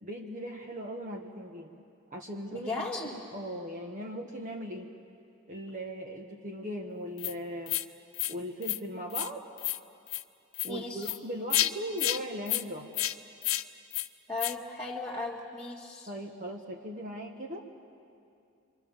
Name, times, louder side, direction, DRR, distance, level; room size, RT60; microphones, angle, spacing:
voice 1, 0.0-1.8 2.1-2.8 3.1-4.9 5.5-7.8 8.3-9.4 10.6-12.9 16.1-17.6, equal, 35° right, 1 dB, 1.4 m, -39 dB
voice 2, 2.5-3.2 10.6-11.1 14.3-16.1, left 3 dB, 10° left, -7 dB, 2.0 m, -36 dB
sound 1, 7.2-7.3 7.7-7.8 8.1-8.3 8.6-8.8 9.1-9.3 9.6-9.8 10.1-10.2 10.5-10.7 11.0-11.2 11.5-11.7 12.0-12.2 12.5-12.6 12.9-13.1 13.4-13.6 13.9-14.1 14.4-14.5, left 14 dB, 75° left, 0.7 m, -30 dB
27.5 x 24.0 x 7.3 m, 2.5 s
head